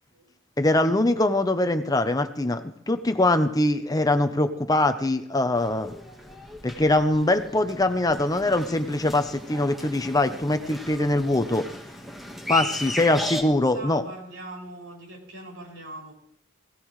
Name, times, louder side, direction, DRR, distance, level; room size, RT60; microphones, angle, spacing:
voice 1, 0.6-5.9 6.6-11.7 12.5-14.0, left 2 dB, 20° left, 8 dB, 0.7 m, -23 dB
sound 1, 5.5-13.4, equal, ahead, 1.5 m, -36 dB
voice 2, 13.3-16.1, right 2 dB, 85° right, -2 dB, 6.4 m, -41 dB
20.0 x 17.0 x 3.2 m, 0.71 s
head